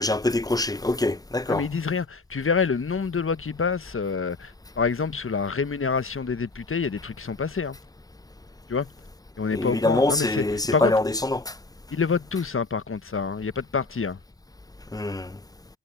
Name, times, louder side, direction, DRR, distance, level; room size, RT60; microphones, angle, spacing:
voice 1, 0.0-1.7 9.5-11.5 14.9-15.4, left 2 dB, 10° left, 0.8 m, -24 dB
voice 2, 1.5-7.8 8.7-8.9 9.4-10.4 10.7-10.9 11.9-14.2, left 5 dB, 30° left, 1.3 m, -27 dB
hypercardioid pair, 45°, 43 cm